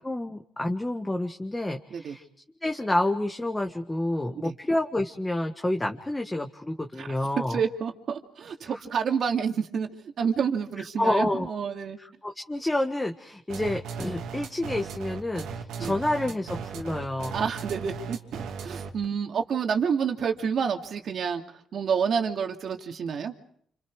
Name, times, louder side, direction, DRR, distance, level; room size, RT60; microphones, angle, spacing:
voice 1, 0.0-2.3 2.6-7.6 11.0-11.5 12.0-17.4, left 1 dB, 10° left, 3 dB, 1.6 m, -29 dB
voice 2, 7.5-9.9 10.2-12.0 15.8-15.9 17.3-21.4 21.7-23.3, right 6 dB, 60° right, 4 dB, 2.6 m, -29 dB
sound 1, 13.5-19.0, right 5 dB, 85° right, 2.7 m, -36 dB
29.0 x 27.0 x 4.9 m, 0.64 s
cardioid pair, 90°, 0 cm